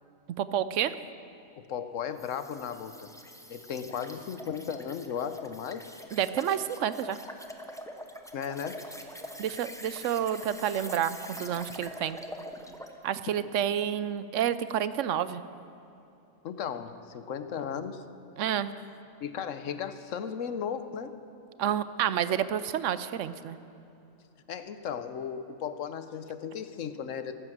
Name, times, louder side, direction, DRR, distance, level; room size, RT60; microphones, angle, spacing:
voice 1, 0.4-0.9 6.1-7.2 9.4-12.2 13.0-15.4 18.4-18.7 21.6-23.6, right 10 dB, 75° right, 14 dB, 0.9 m, -29 dB
voice 2, 1.6-3.1 3.5-5.9 8.3-8.8 16.4-18.0 19.2-21.2 24.5-27.3, left 7 dB, 75° left, 11 dB, 1.1 m, -36 dB
sound 1, 2.2-13.0, equal, 5° left, 0.7 m, -44 dB
14.0 x 12.5 x 7.4 m, 2.8 s
omnidirectional pair, 1.4 m